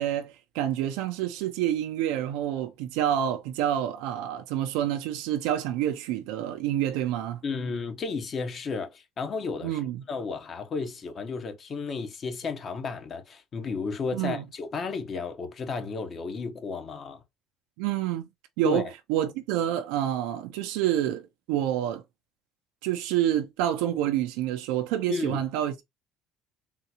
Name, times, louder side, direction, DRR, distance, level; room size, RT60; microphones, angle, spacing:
voice 1, 0.0-7.4 9.6-10.0 14.1-14.4 17.8-18.3 18.6-22.0 22.8-25.8, right 11 dB, 85° right, 0.4 m, -28 dB
voice 2, 7.4-9.8 10.1-17.2 18.6-18.9 25.1-25.4, left 4 dB, 40° left, 0.8 m, -33 dB
3.6 x 2.3 x 2.8 m
supercardioid pair, 90°, 0 cm